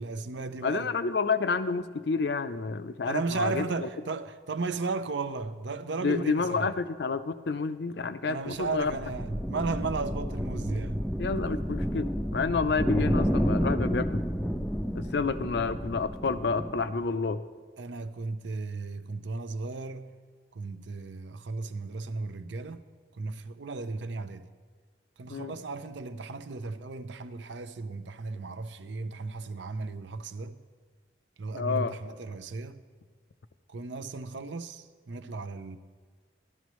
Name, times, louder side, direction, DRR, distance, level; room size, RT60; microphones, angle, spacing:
voice 1, 0.0-0.9 3.0-6.7 8.2-11.0 17.8-20.1 20.5-22.8 23.1-24.4 25.2-30.6 31.4-32.8 33.7-35.8, right 3 dB, 75° right, 0.6 m, -35 dB
voice 2, 0.6-3.9 6.0-8.9 11.2-14.3 14.9-17.4 25.3-25.5 31.5-32.0, left 4 dB, 65° left, 0.5 m, -29 dB
sound 1, 8.6-17.0, equal, ahead, 0.4 m, -30 dB
14.5 x 12.0 x 3.1 m
head